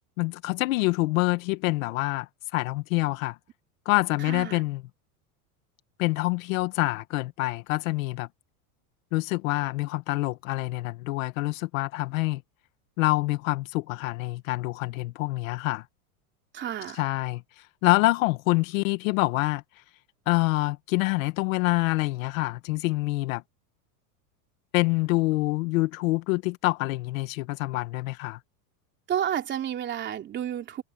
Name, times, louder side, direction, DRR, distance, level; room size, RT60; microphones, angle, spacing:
voice 1, 0.2-3.4 3.8-4.8 6.0-8.3 9.1-12.4 13.0-15.8 16.9-17.4 17.8-19.6 20.3-23.4 24.7-28.4, left 21 dB, 60° left, 1.3 m, -26 dB
voice 2, 4.2-4.6 16.5-17.0 29.1-30.8, right 10 dB, 25° right, 3.4 m, -31 dB
supercardioid pair, 165°, 45 cm